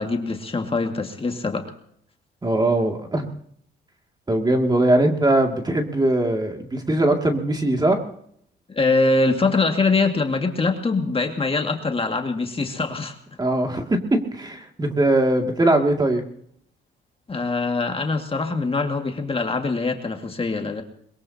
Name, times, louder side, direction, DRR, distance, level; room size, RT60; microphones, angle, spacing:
voice 1, 0.0-1.7 8.7-13.2 17.3-20.8, left 3 dB, 30° left, 4 dB, 2.1 m, -23 dB
voice 2, 2.4-3.3 4.3-8.0 13.4-16.2, right 1 dB, 20° right, 3 dB, 2.4 m, -21 dB
22.0 x 22.0 x 2.9 m, 0.65 s
cardioid pair, 90°, 20 cm